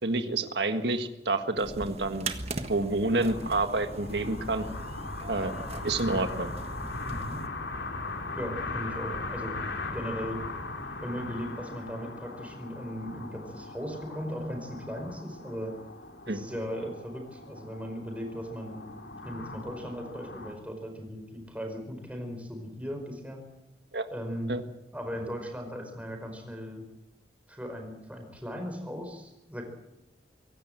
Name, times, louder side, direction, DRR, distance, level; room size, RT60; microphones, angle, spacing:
voice 1, 0.0-2.3 2.7-4.6 5.3-5.5 5.8-6.5 16.3-16.4 23.9-24.0 24.5-24.6, right 2 dB, 70° right, 7 dB, 1.7 m, -28 dB
sound 1, 1.6-7.5, right 2 dB, 35° right, 1.5 m, -39 dB
sound 2, 3.3-20.5, left 3 dB, 85° left, 3.1 m, -39 dB
voice 2, 7.1-7.4 8.3-9.6 9.9-10.4 11.0-15.7 16.3-18.9 19.2-23.4 24.1-24.5 24.9-26.8 27.5-29.7, equal, 10° right, 4 dB, 4.9 m, -37 dB
24.5 x 17.0 x 7.9 m, 0.87 s
head